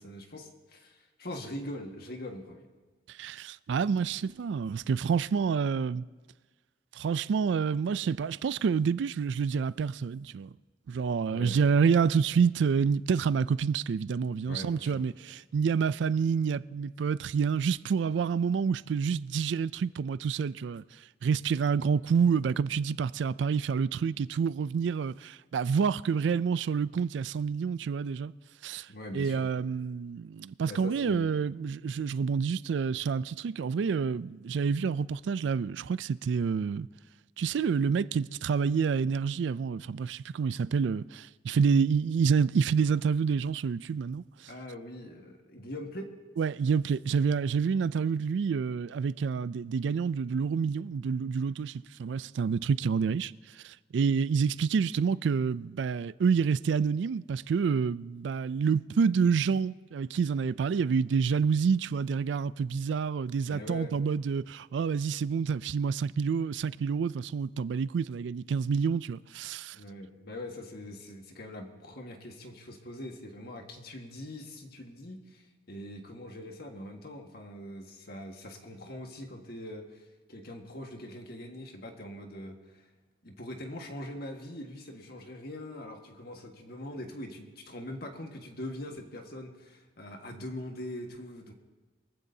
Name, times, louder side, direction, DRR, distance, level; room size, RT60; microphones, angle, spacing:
voice 1, 0.0-2.7 11.3-11.6 14.4-15.0 28.9-29.7 30.6-31.4 44.5-46.1 63.5-63.9 69.7-82.8 83.2-91.5, left 1 dB, 55° left, 1.6 m, -42 dB
voice 2, 3.1-6.0 6.9-10.5 10.9-20.8 21.2-28.3 28.6-28.9 29.1-36.9 37.4-44.2 46.4-53.3 53.6-69.8, right 6 dB, 75° right, 0.3 m, -28 dB
23.5 x 14.5 x 2.8 m
head